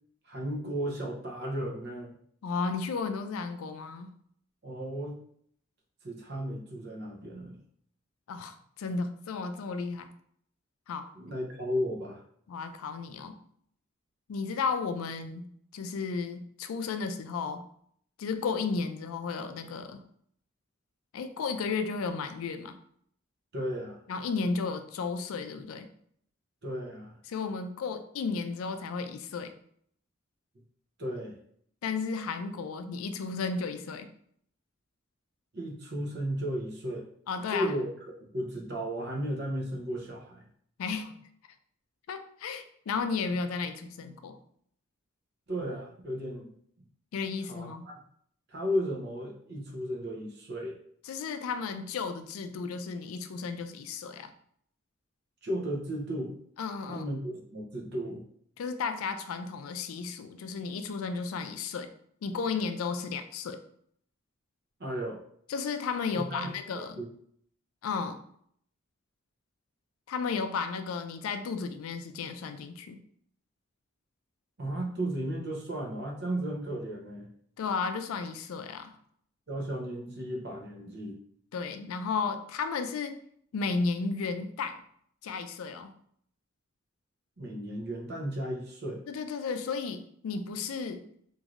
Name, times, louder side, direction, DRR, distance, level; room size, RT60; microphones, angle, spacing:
voice 1, 0.3-2.2 4.6-5.2 6.0-7.6 11.1-12.2 23.5-24.0 26.6-27.2 31.0-31.4 35.5-37.1 37.5-37.9 38.3-40.4 45.5-46.5 47.5-47.9 48.5-50.8 55.4-56.4 56.9-58.2 64.8-65.2 66.1-67.1 74.6-77.3 79.5-81.2 87.4-89.0, equal, 50° right, 0 dB, 0.6 m, -34 dB
voice 2, 2.4-4.1 8.3-10.1 10.9-11.1 12.5-13.4 14.3-15.5 15.7-17.7 18.2-20.0 21.1-22.8 24.1-25.9 27.3-29.5 31.8-34.1 37.3-37.7 40.8-41.2 42.1-44.4 47.1-47.9 51.0-54.3 56.6-57.1 58.6-61.9 62.2-63.6 65.5-67.0 67.8-68.2 70.1-73.0 77.6-78.9 81.5-83.2 83.5-84.8 85.2-85.9 89.1-91.1, left 4 dB, 85° left, 8 dB, 0.3 m, -33 dB
3.0 x 2.6 x 2.4 m, 0.65 s
head